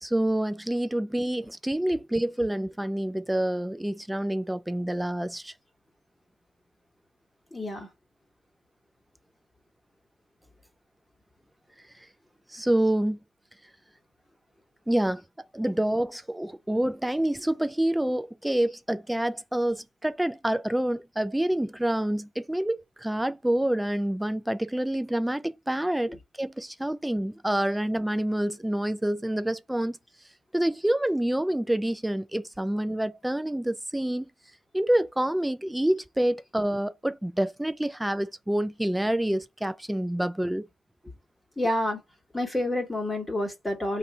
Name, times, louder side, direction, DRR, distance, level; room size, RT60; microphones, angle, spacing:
voice 1, 0.0-5.5 12.5-13.2 14.9-15.2 15.5-30.0 30.5-34.3 34.7-40.6, right 1 dB, 5° right, 0.3 m, -27 dB
voice 2, 7.5-7.9 26.1-26.2 41.6-42.0 42.3-44.0, left 1 dB, 10° left, 1.4 m, -28 dB
2.6 x 2.5 x 4.1 m
cardioid pair, 90°, 0 cm